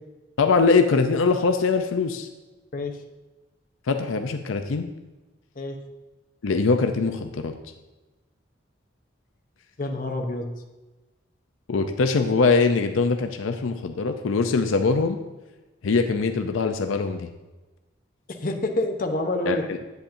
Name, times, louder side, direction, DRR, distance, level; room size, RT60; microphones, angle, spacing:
voice 1, 0.4-2.3 3.9-4.9 6.4-7.5 11.7-15.2 15.8-17.3 19.5-19.8, left 4 dB, 85° left, 6 dB, 0.5 m, -22 dB
voice 2, 9.8-10.5 18.4-19.6, left 2 dB, 45° left, 2 dB, 0.8 m, -27 dB
8.5 x 8.2 x 2.6 m, 1.1 s
head